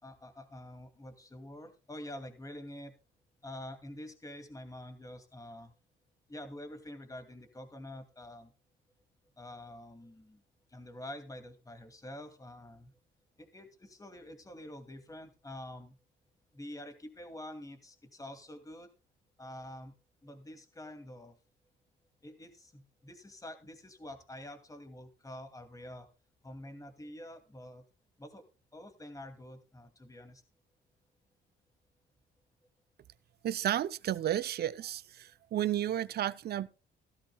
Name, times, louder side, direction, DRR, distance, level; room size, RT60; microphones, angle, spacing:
voice 1, 0.0-2.9 3.4-5.7 6.3-8.5 9.4-10.4 10.7-12.9 13.4-16.0 16.5-18.9 19.4-19.9 20.2-21.4 22.2-26.1 26.4-27.8 28.2-28.4 28.7-30.4, left 1 dB, 15° left, 2.4 m, -47 dB
voice 2, 33.4-36.7, right 11 dB, 55° right, 0.5 m, -32 dB
16.0 x 13.0 x 2.3 m
cardioid pair, 90°, 20 cm